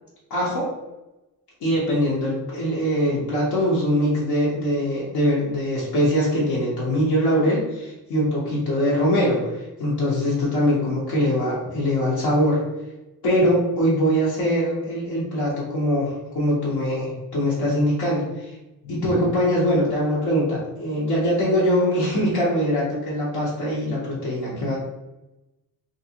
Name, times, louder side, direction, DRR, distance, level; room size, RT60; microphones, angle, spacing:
voice 1, 0.3-0.7 1.6-12.6 13.2-18.5 18.8-24.8, equal, 80° left, -7 dB, 1.0 m, -22 dB
3.1 x 2.6 x 2.8 m, 0.99 s
cardioid pair, 135°, 38 cm